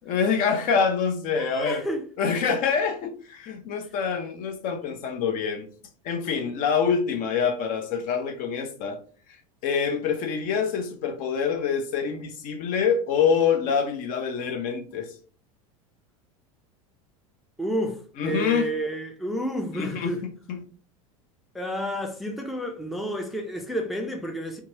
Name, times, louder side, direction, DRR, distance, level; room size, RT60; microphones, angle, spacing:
voice 1, 0.0-1.8 2.2-5.7 6.0-9.0 9.3-15.1 18.2-18.7 19.7-20.1 20.5-20.6, left 6 dB, 50° left, 0.6 m, -26 dB
voice 2, 1.3-2.0 17.6-20.2 21.5-24.6, equal, ahead, 0.4 m, -30 dB
2.9 x 2.3 x 2.7 m
hypercardioid pair, 95°, 18 cm